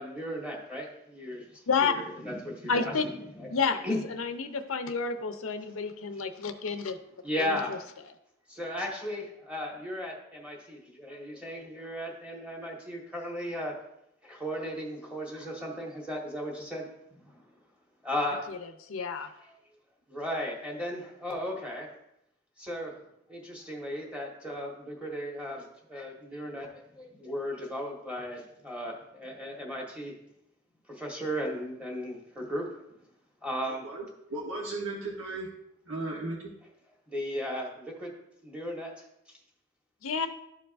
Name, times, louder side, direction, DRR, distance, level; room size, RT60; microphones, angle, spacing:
voice 1, 0.0-3.5 3.8-4.0 6.1-6.2 7.2-7.8 8.5-13.7 14.2-16.9 17.1-17.4 18.0-18.5 19.4-19.5 20.1-21.9 22.6-23.0 23.3-30.2 30.9-32.8 33.4-33.8 37.1-38.1 38.4-39.4, equal, 5° right, -2 dB, 1.4 m, -36 dB
voice 2, 2.7-3.1 3.5-3.8 4.1-7.0 7.4-7.8 18.5-18.6 18.9-19.3 40.0-40.3, left 5 dB, 90° left, 8 dB, 0.6 m, -30 dB
voice 3, 34.3-35.5 35.9-36.4, right 2 dB, 90° right, -2 dB, 1.1 m, -35 dB
12.5 x 4.7 x 2.5 m, 0.80 s
head